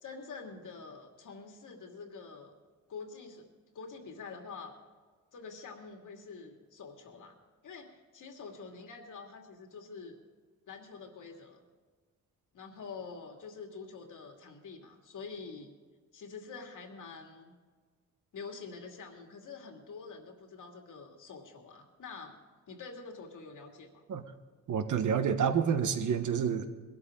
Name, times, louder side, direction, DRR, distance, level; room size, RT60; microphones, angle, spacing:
voice 1, 0.0-2.6 2.9-3.5 3.7-4.7 5.3-7.4 7.6-10.1 10.7-11.6 12.5-15.7 16.1-17.5 18.3-22.4 22.7-24.0, left 4 dB, 70° left, 2 dB, 2.5 m, -46 dB
voice 2, 24.7-26.7, right 7 dB, 65° right, 9 dB, 1.2 m, -28 dB
21.5 x 12.5 x 3.8 m, 1.5 s
cardioid pair, 115°, 33 cm